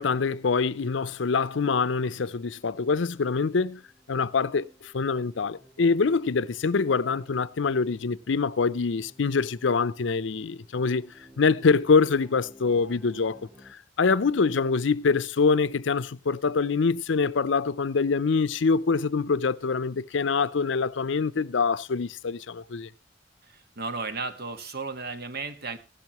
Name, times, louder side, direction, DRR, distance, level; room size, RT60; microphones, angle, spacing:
voice 1, 0.0-3.8 4.1-13.4 13.7-22.9, left 4 dB, 70° left, 0.6 m, -25 dB
sound 1, 1.4-13.7, equal, ahead, 1.6 m, -56 dB
voice 2, 23.4-25.8, right 4 dB, 55° right, 1.5 m, -34 dB
16.0 x 12.0 x 3.0 m
head